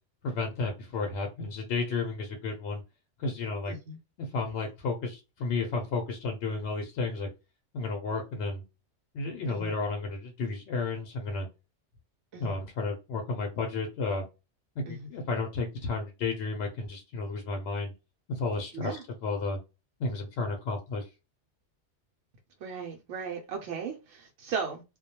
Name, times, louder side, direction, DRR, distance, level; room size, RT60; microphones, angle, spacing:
voice 1, 0.2-2.8 3.2-3.8 4.2-7.3 7.7-8.6 9.1-11.5 12.4-14.2 14.8-17.9 18.3-19.0 19.2-19.6 20.0-21.1, left 3 dB, 70° left, 0.8 m, -32 dB
voice 2, 3.7-4.0 9.5-9.7 12.3-12.5 14.9-15.1 18.7-19.0 22.6-24.8, right 6 dB, 80° right, 0.9 m, -36 dB
2.2 x 2.1 x 2.8 m
omnidirectional pair, 1.2 m